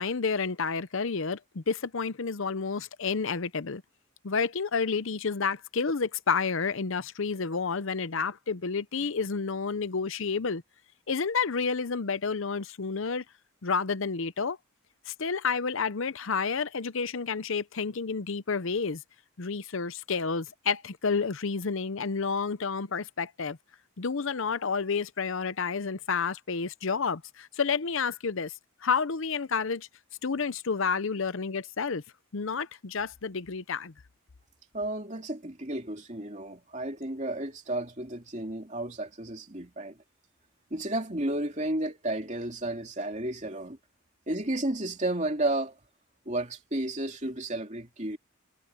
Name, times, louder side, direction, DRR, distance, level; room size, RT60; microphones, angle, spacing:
voice 1, 0.0-3.8 4.2-10.6 11.1-13.2 13.6-14.6 15.1-19.0 19.4-23.6 24.0-28.5 28.8-29.9 30.2-32.0 32.3-33.9, left 5 dB, 60° left, 0.7 m, -30 dB
voice 2, 34.7-40.0 40.7-43.8 44.3-45.7 46.2-48.2, right 1 dB, 30° right, 2.9 m, -32 dB
head